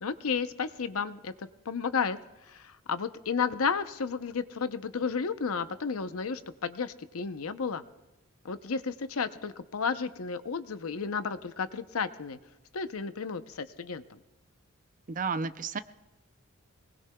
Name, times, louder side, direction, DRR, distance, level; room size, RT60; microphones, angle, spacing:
voice 1, 0.0-2.2 2.4-7.8 8.4-12.4 12.7-14.2, left 5 dB, 85° left, 11 dB, 0.7 m, -32 dB
voice 2, 15.1-15.8, right 4 dB, 40° right, 12 dB, 0.5 m, -32 dB
25.5 x 19.5 x 2.3 m, 1.0 s
head